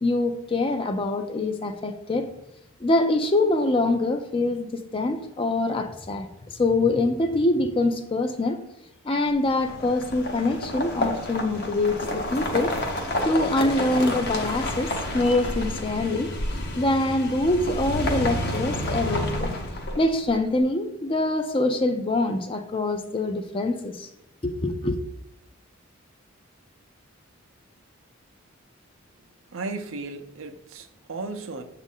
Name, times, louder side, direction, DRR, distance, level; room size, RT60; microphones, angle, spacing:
voice 1, 0.0-2.3 2.8-8.6 9.1-12.7 13.2-16.3 16.8-19.5 20.0-24.1 24.4-25.0, left 2 dB, 25° left, 0.4 m, -24 dB
sound 1, 9.5-20.3, left 1 dB, 50° left, 0.8 m, -29 dB
voice 2, 29.5-31.6, right 3 dB, 70° right, 0.6 m, -35 dB
7.3 x 2.5 x 5.4 m
head